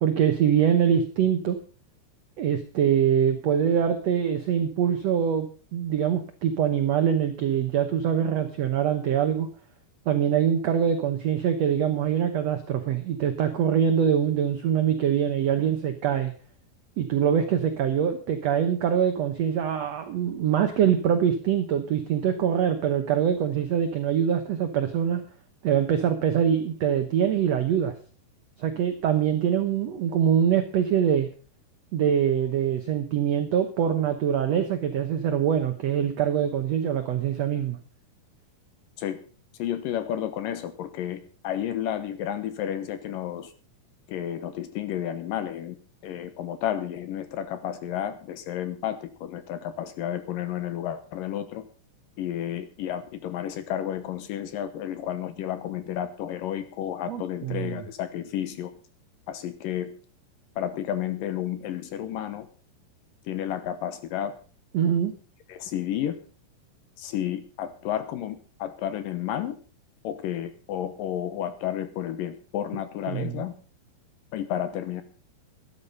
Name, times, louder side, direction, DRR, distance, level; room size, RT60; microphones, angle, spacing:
voice 1, 0.0-1.6 2.4-5.5 5.7-9.5 10.0-16.3 17.0-25.2 25.6-27.9 28.6-31.3 31.9-37.8 57.1-57.8 64.7-65.1 73.1-73.4, right 8 dB, 80° right, 7 dB, 1.5 m, -24 dB
voice 2, 39.6-43.5 44.1-45.8 46.0-51.6 52.2-58.7 59.3-59.9 60.6-62.5 63.3-64.3 65.5-66.2 67.0-69.6 70.0-73.5 74.3-75.0, left 10 dB, 70° left, 11 dB, 2.3 m, -31 dB
12.5 x 10.5 x 5.5 m, 0.39 s
omnidirectional pair, 4.5 m